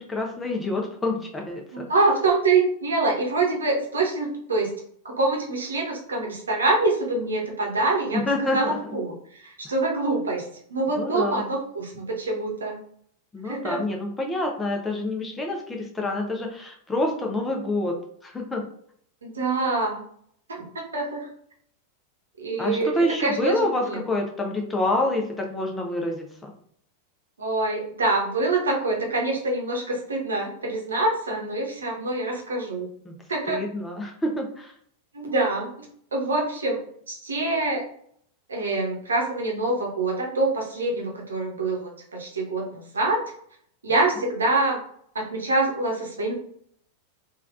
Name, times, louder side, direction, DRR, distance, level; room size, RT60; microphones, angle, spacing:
voice 1, 0.0-1.8 8.3-8.8 10.9-11.4 13.3-18.0 18.2-18.6 22.6-26.5 33.0-33.2 33.5-34.7, left 1 dB, 10° left, 1 dB, 0.7 m, -27 dB
voice 2, 1.7-4.8 5.0-8.2 8.5-10.4 10.7-12.8 13.4-13.8 19.2-20.0 20.5-20.7 20.9-21.3 22.4-24.0 27.4-32.9 33.3-33.6 35.1-36.8 37.1-37.8 38.5-43.2 43.8-44.8 45.1-46.3, right 2 dB, 70° right, 0 dB, 0.9 m, -25 dB
3.2 x 2.4 x 2.5 m, 0.64 s
figure-of-eight pair, 90°, 0 cm